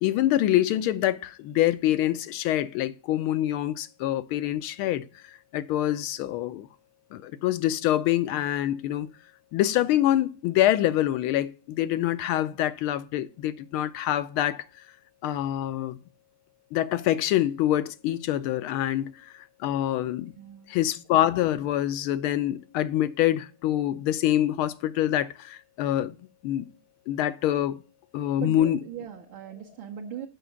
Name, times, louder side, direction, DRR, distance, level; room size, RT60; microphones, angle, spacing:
voice 1, 0.0-5.1 5.5-6.7 7.1-9.1 9.5-14.6 15.2-16.0 16.7-19.2 19.6-20.3 20.7-26.2 26.4-26.7 27.1-27.8 28.1-28.8, left 13 dB, 85° left, 1.5 m, -25 dB
voice 2, 20.4-20.7 28.4-30.3, right 10 dB, 70° right, 1.6 m, -39 dB
7.5 x 5.3 x 6.9 m
omnidirectional pair, 2.3 m